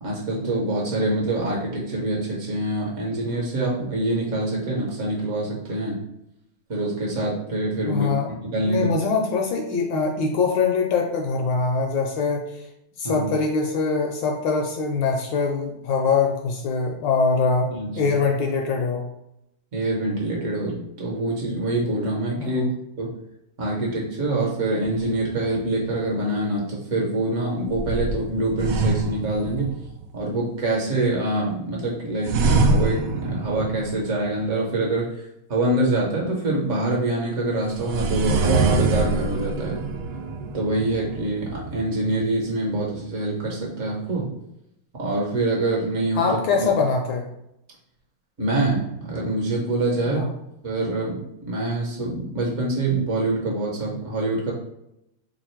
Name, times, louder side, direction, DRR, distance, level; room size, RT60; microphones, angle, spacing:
voice 1, 0.0-6.0 6.7-8.1 8.4-8.9 13.0-13.3 17.7-18.1 19.7-22.7 23.0-23.1 23.6-29.7 30.1-35.1 35.5-39.8 40.5-44.3 45.0-46.7 48.4-50.3 50.6-54.5, right 2 dB, 50° right, -2 dB, 1.0 m, -25 dB
voice 2, 7.8-8.3 8.6-12.6 13.0-19.1 22.4-22.7 46.2-47.3 50.1-50.3, left 4 dB, 75° left, 2 dB, 1.2 m, -23 dB
sound 1, 24.8-25.8 27.7-30.0 32.2-34.4 37.7-42.4, right 3 dB, 85° right, 0.8 m, -25 dB
3.3 x 2.5 x 4.4 m, 0.83 s
omnidirectional pair, 2.2 m